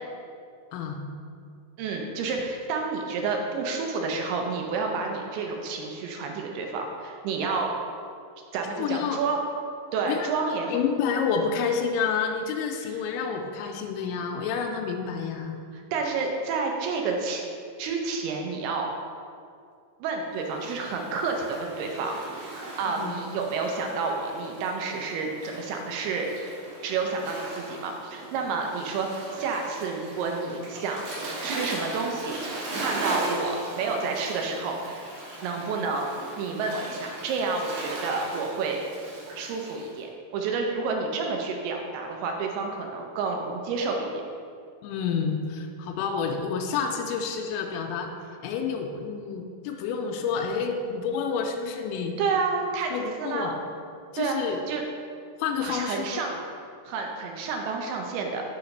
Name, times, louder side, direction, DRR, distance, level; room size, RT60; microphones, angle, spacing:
voice 1, 0.7-1.0 8.8-9.2 10.0-10.3 10.7-15.6 23.0-23.1 44.8-48.1 48.4-52.1 52.9-53.6 54.1-54.6 55.4-56.2, left 6 dB, 90° left, 2 dB, 2.9 m, -29 dB
voice 2, 1.8-7.7 8.5-9.4 9.9-10.8 12.9-13.0 15.7-17.4 17.8-18.9 20.0-26.3 26.8-31.0 31.4-35.0 35.4-38.8 39.4-44.2 52.2-52.9 53.2-53.5 54.2-54.8 55.6-56.3 56.9-58.4, right 4 dB, 80° right, 2 dB, 2.3 m, -30 dB
Waves surf, 20.5-39.9, right 2 dB, 60° right, 2.3 m, -38 dB
6.4 x 4.8 x 5.3 m, 2.3 s
omnidirectional pair, 5.1 m